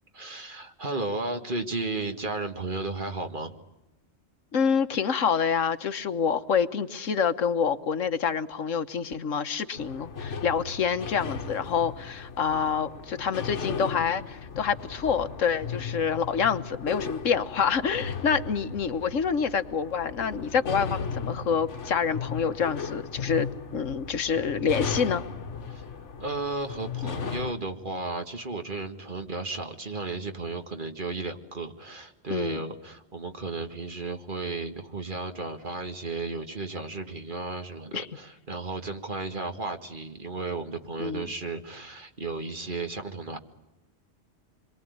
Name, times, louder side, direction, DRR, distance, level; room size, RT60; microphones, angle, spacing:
voice 1, 0.1-3.5 25.7-25.8 26.2-43.4, right 3 dB, 40° right, 6 dB, 2.0 m, -34 dB
voice 2, 4.5-23.5 23.7-25.2 32.3-32.6 37.9-38.1 41.0-41.3, left 6 dB, 90° left, 10 dB, 1.5 m, -27 dB
sound 1, 9.7-27.5, left 6 dB, 70° left, 1.6 m, -36 dB
27.0 x 22.5 x 9.5 m, 0.98 s
omnidirectional pair, 1.3 m